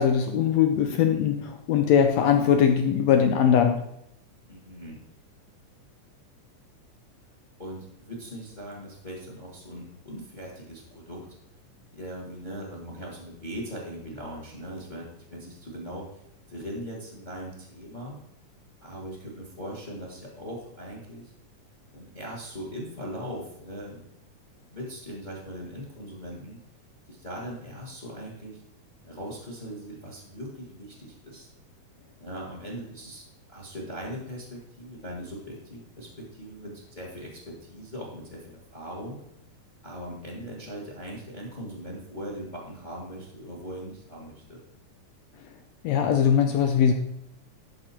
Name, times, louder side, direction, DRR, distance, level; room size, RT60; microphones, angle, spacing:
voice 1, 0.0-3.8 45.8-46.9, left 8 dB, 75° left, 5 dB, 1.6 m, -21 dB
voice 2, 4.5-5.0 7.6-11.3 11.9-16.2 16.5-18.2 18.8-21.3 21.9-24.0 24.7-26.6 27.1-28.6 29.0-31.5 32.2-39.2 39.8-44.6, equal, 20° left, -1 dB, 1.3 m, -40 dB
12.0 x 5.3 x 4.4 m, 0.80 s
omnidirectional pair, 3.7 m